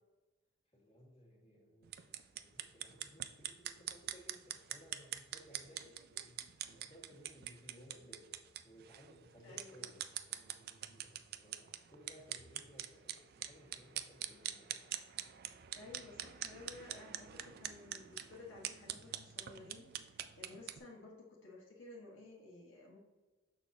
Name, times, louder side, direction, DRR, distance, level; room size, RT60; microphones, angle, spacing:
voice 1, 0.7-2.0 2.3-8.3 8.6-14.9, equal, 30° left, -4 dB, 1.9 m, -60 dB
sound 1, 1.8-20.8, right 11 dB, 55° right, 0.4 m, -45 dB
voice 2, 9.4-9.9 15.7-23.0, left 2 dB, 75° left, -4 dB, 1.4 m, -54 dB
6.6 x 6.1 x 2.7 m, 1.2 s
head